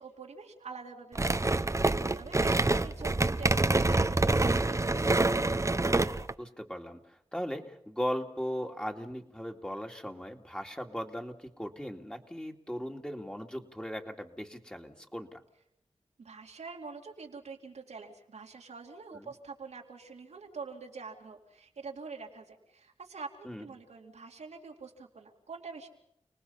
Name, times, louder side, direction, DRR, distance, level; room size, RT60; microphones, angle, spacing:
voice 1, 0.0-5.2 16.2-25.9, right 4 dB, 85° right, 1 dB, 2.7 m, -46 dB
sound 1, 1.1-6.3, right 2 dB, 25° right, 0.9 m, -26 dB
voice 2, 6.4-15.4 19.1-19.3 23.4-23.7, equal, 10° left, 3 dB, 2.5 m, -38 dB
30.0 x 19.0 x 5.7 m, 0.73 s
cardioid pair, 50°, 11 cm